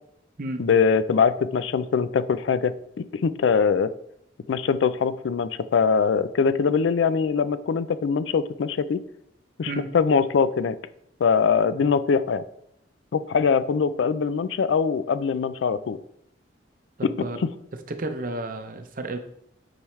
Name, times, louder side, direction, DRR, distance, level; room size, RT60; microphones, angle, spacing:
voice 1, 0.6-3.9 4.5-9.0 9.6-10.8 11.2-12.4 13.1-16.0 17.0-17.1, left 6 dB, 75° left, 15 dB, 0.4 m, -22 dB
voice 2, 17.0-17.4 17.9-19.2, right 2 dB, 45° right, 8 dB, 0.7 m, -32 dB
8.8 x 4.8 x 3.1 m, 0.74 s
head